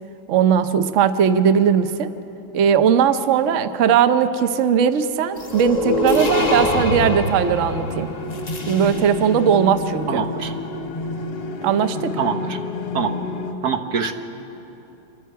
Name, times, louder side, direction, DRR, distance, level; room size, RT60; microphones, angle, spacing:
voice 1, 0.3-2.1 2.5-8.1 8.7-10.2 11.6-12.2, right 7 dB, 85° right, 10 dB, 0.6 m, -18 dB
sound 1, 5.4-9.4, left 1 dB, 25° left, 0.9 m, -24 dB
sound 2, 6.6-13.5, left 2 dB, 85° left, 2.1 m, -30 dB
voice 2, 10.1-10.5 12.2-12.6 12.9-13.1 13.6-14.1, right 6 dB, 55° right, 6 dB, 1.5 m, -24 dB
26.5 x 23.5 x 4.7 m, 3.0 s
omnidirectional pair, 2.3 m